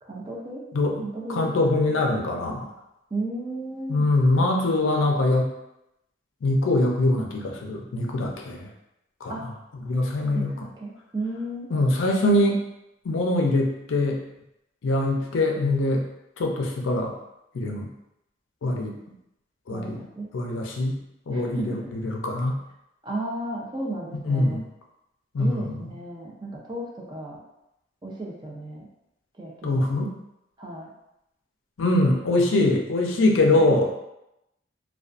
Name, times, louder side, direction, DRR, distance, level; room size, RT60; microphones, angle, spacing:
voice 1, 0.0-0.6 1.0-1.6 3.1-4.1 9.3-9.4 10.3-11.7 19.7-20.3 21.3-21.9 23.0-24.6 25.4-27.4 28.0-28.9 29.4-29.9 30.6-30.9 32.0-32.4 33.5-33.6, right 1 dB, 20° right, -3 dB, 0.4 m, -34 dB
voice 2, 1.3-2.7 3.9-5.5 6.4-8.7 9.2-9.4 9.8-10.6 11.7-12.6 13.0-14.2 14.8-16.1 16.4-17.1 17.5-17.9 18.6-19.0 19.7-20.0 20.3-21.0 21.3-22.6 24.3-24.6 25.3-25.8 29.6-30.1 31.8-33.9, left 2 dB, 80° left, 1 dB, 0.4 m, -23 dB
2.4 x 2.3 x 2.4 m, 0.87 s
head